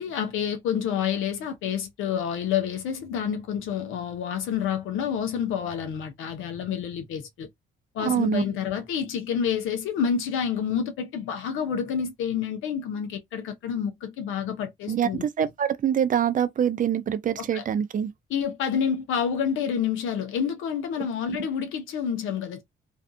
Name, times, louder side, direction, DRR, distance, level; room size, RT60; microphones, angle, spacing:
voice 1, 0.0-7.5 7.9-15.5 17.4-17.6 18.3-22.6, left 8 dB, 85° left, 0.7 m, -28 dB
voice 2, 8.0-8.4 14.9-18.1, right 8 dB, 40° right, 0.4 m, -25 dB
2.6 x 2.3 x 2.5 m
cardioid pair, 90°, 20 cm